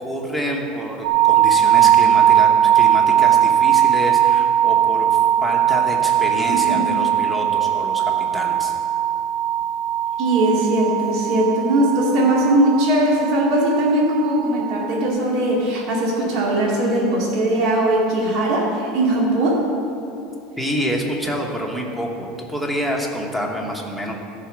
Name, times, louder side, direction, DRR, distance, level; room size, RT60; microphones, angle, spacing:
voice 1, 0.0-8.7 20.6-24.1, equal, 5° right, 0 dB, 1.1 m, -27 dB
sound 1, 1.0-15.1, right 10 dB, 80° right, 0.8 m, -19 dB
voice 2, 6.5-6.8 10.2-19.5, right 1 dB, 55° right, -4 dB, 2.2 m, -19 dB
14.0 x 4.9 x 6.1 m, 2.8 s
supercardioid pair, 160°, 0 cm